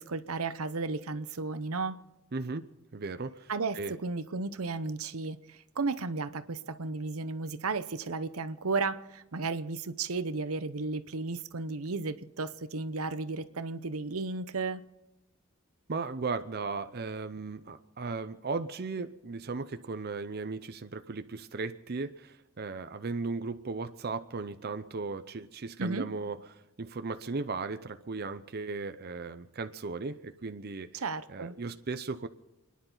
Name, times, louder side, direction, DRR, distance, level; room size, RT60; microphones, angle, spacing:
voice 1, 0.0-2.0 3.5-14.8 25.8-26.0 30.9-31.5, right 3 dB, 80° right, 0.8 m, -34 dB
voice 2, 2.3-2.7 2.9-4.0 15.9-31.0 31.3-32.3, right 4 dB, 45° right, 0.6 m, -36 dB
29.5 x 10.5 x 3.9 m
head